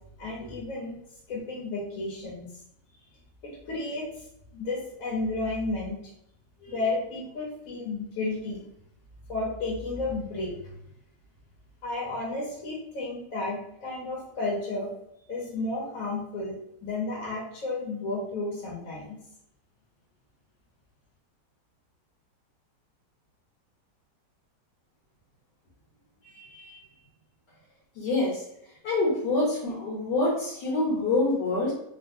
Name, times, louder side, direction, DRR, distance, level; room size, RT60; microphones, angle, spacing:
voice 1, 0.2-1.0 1.3-2.5 3.4-4.1 4.5-6.0 6.6-8.6 9.3-10.5 11.8-14.9 15.3-16.6 16.8-19.2, left 2 dB, 60° left, -4 dB, 1.1 m, -32 dB
voice 2, 26.3-26.8 28.0-28.4 28.8-31.7, left 2 dB, 75° left, -5 dB, 1.4 m, -26 dB
3.2 x 2.3 x 2.6 m, 0.79 s
omnidirectional pair, 1.9 m